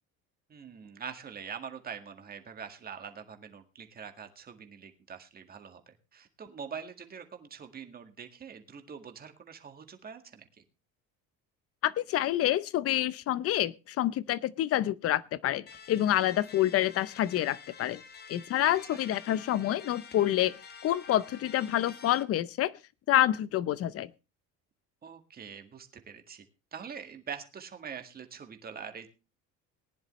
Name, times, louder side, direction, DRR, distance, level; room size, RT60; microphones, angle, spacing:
voice 1, 0.5-10.5 18.6-19.0 25.0-26.5 26.7-29.1, right 7 dB, 30° right, 1.9 m, -44 dB
voice 2, 11.8-18.0 18.3-20.6 20.8-22.7 23.1-24.1, left 13 dB, 45° left, 0.7 m, -27 dB
sound 1, 15.7-22.2, left 6 dB, 30° left, 1.3 m, -49 dB
19.5 x 10.5 x 3.1 m
cardioid pair, 140°, 32 cm